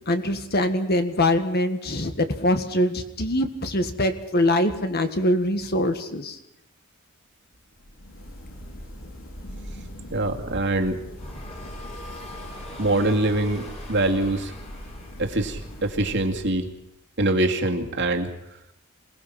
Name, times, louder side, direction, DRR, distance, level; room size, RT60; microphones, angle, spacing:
voice 1, 0.1-6.4, left 1 dB, 45° left, 8 dB, 1.8 m, -23 dB
sound 1, 7.7-16.8, equal, 60° left, 4.6 m, -41 dB
voice 2, 10.1-11.0 12.8-14.5 15.2-16.7 17.2-18.3, right 2 dB, 55° right, 4 dB, 2.3 m, -24 dB
sound 2, 11.1-16.3, left 1 dB, 30° left, 4.1 m, -42 dB
27.0 x 19.0 x 5.9 m, 0.83 s
head